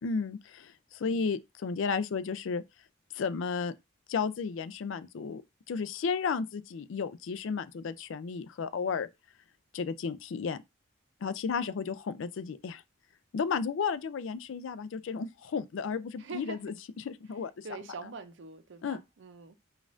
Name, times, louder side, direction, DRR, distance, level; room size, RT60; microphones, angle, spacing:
voice 1, 0.0-2.6 3.1-3.7 4.1-5.4 5.7-9.1 9.7-10.6 11.2-12.8 13.3-16.7 17.0-17.7 18.8-19.0, left 5 dB, 70° left, 0.4 m, -33 dB
voice 2, 16.2-16.6 17.6-19.5, right 4 dB, 60° right, 0.5 m, -44 dB
5.1 x 2.4 x 2.5 m
head